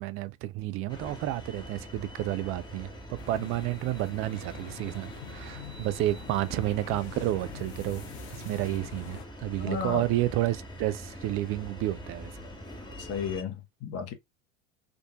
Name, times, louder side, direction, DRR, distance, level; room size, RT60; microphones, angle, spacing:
voice 1, 0.0-12.3, right 15 dB, 40° right, 0.4 m, -31 dB
sound 1, 0.9-13.4, equal, 10° left, 1.1 m, -43 dB
sound 2, 3.2-9.2, left 9 dB, 65° left, 1.1 m, -47 dB
voice 2, 9.6-10.1 13.0-14.1, left 6 dB, 40° left, 1.1 m, -34 dB
3.7 x 2.5 x 2.2 m
hypercardioid pair, 90°, 37 cm